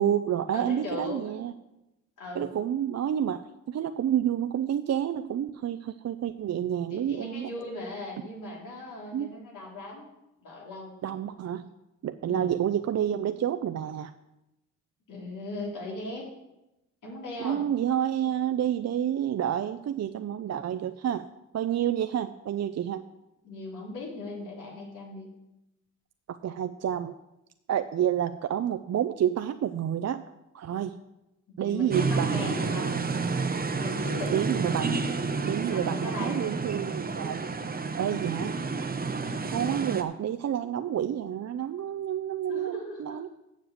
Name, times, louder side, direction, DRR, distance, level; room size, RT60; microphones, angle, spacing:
voice 1, 0.0-1.5 2.4-3.4 3.7-7.5 9.1-9.3 11.0-11.7 12.0-14.1 17.4-21.2 21.5-23.0 26.3-27.2 27.7-30.2 30.5-31.0 31.6-33.0 34.3-35.1 35.4-37.4 38.0-38.5 39.5-43.3, right 10 dB, 55° right, 9 dB, 0.5 m, -29 dB
voice 2, 0.5-1.4 2.2-2.5 6.9-10.0 10.4-11.0 12.3-12.6 15.1-16.3 17.0-17.7 23.4-25.3 31.5-32.9 33.8-34.3 35.7-36.5 39.2-39.5 39.9-40.0 42.5-43.2, left 2 dB, 80° left, -3 dB, 3.5 m, -38 dB
sound 1, 31.9-40.0, right 4 dB, 30° right, 0.8 m, -30 dB
7.5 x 7.2 x 7.9 m, 0.92 s
cardioid pair, 85°, 31 cm